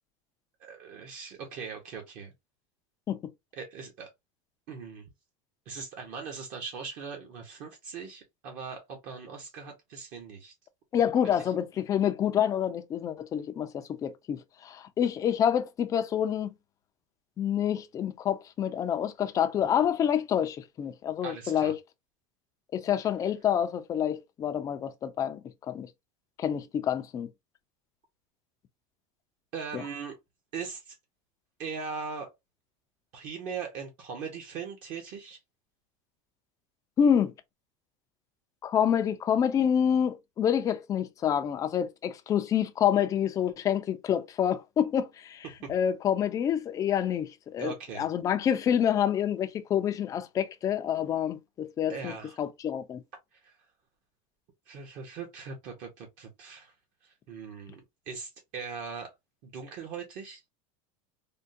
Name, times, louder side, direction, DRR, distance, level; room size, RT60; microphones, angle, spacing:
voice 1, 0.6-2.3 3.6-4.1 4.7-5.0 5.7-10.5 11.4-11.5 21.2-21.7 29.5-30.2 30.5-31.0 31.6-32.3 33.1-35.4 45.4-45.7 47.6-48.0 51.9-52.4 53.3-53.6 54.7-56.7 57.0-57.8 58.1-59.1 59.4-60.4, right 5 dB, 50° right, 0.9 m, -40 dB
voice 2, 10.9-16.5 17.4-21.8 22.7-25.4 25.7-25.9 26.4-27.3 29.7-29.8 37.0-37.3 38.6-47.7 48.0-52.1 52.4-53.0, left 9 dB, 20° left, 0.4 m, -27 dB
3.5 x 2.2 x 2.6 m
supercardioid pair, 145°, 17 cm